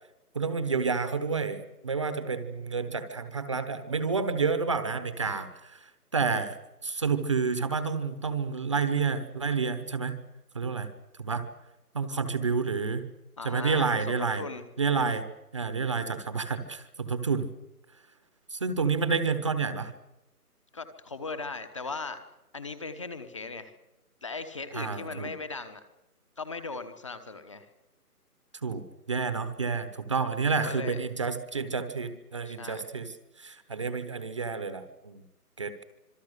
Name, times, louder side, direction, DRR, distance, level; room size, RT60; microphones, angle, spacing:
voice 1, 0.3-5.8 6.1-6.6 6.8-10.1 10.5-10.9 11.2-11.4 11.9-13.0 13.4-14.4 14.8-15.2 15.5-17.5 18.5-19.9 24.7-25.3 28.6-33.1 33.4-35.2 35.6-35.8, right 5 dB, 20° right, 10 dB, 1.0 m, -29 dB
voice 2, 13.4-14.7 20.7-22.2 22.5-23.7 24.2-25.8 26.4-27.7 30.5-31.1 32.4-32.9, left 4 dB, 20° left, 10 dB, 1.1 m, -38 dB
26.0 x 23.0 x 6.6 m, 0.95 s
figure-of-eight pair, 160°, 47 cm